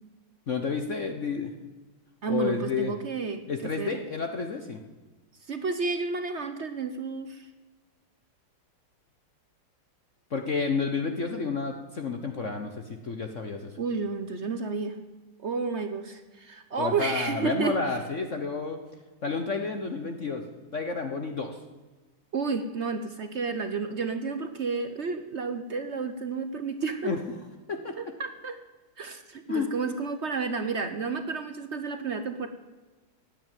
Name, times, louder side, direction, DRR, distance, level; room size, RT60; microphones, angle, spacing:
voice 1, 0.5-1.5 2.3-2.9 3.5-4.8 10.3-13.7 16.8-18.8 19.2-20.4 20.7-21.6 27.0-27.2 27.7-28.0 29.5-29.7, left 4 dB, 45° left, 5 dB, 1.2 m, -30 dB
voice 2, 2.2-3.4 3.8-4.0 5.4-7.5 13.8-15.0 15.4-17.8 22.3-27.1 28.0-28.6 29.0-32.5, right 4 dB, 55° right, 9 dB, 0.8 m, -31 dB
16.5 x 9.4 x 9.2 m, 1.2 s
omnidirectional pair, 2.3 m